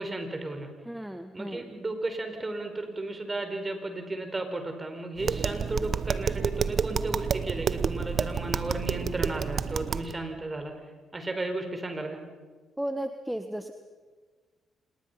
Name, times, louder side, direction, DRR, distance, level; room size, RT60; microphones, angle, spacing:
voice 1, 0.0-0.7 1.3-10.7 11.1-12.2, right 2 dB, 30° right, 6 dB, 4.8 m, -34 dB
voice 2, 0.8-1.7 12.8-13.7, right 1 dB, 5° right, 8 dB, 1.4 m, -34 dB
Tap, 5.2-10.1, right 6 dB, 55° right, 0.9 m, -29 dB
27.0 x 20.5 x 5.7 m, 1.4 s
hypercardioid pair, 50°, 0 cm